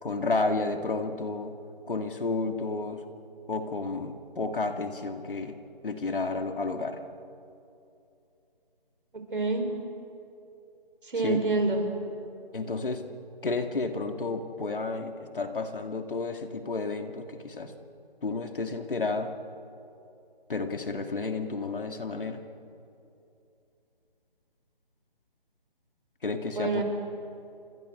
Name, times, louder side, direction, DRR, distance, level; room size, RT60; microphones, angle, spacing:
voice 1, 0.0-1.5 1.9-3.0 3.5-5.5 5.8-7.0 11.2-11.4 12.5-13.0 13.4-17.7 18.2-19.3 20.5-22.4 26.2-26.8, left 3 dB, 60° left, 6 dB, 2.2 m, -31 dB
voice 2, 9.3-9.7 11.0-11.8 26.5-26.8, right 3 dB, 60° right, 4 dB, 4.9 m, -26 dB
28.5 x 25.0 x 6.6 m, 2.8 s
hypercardioid pair, 180°, 30 cm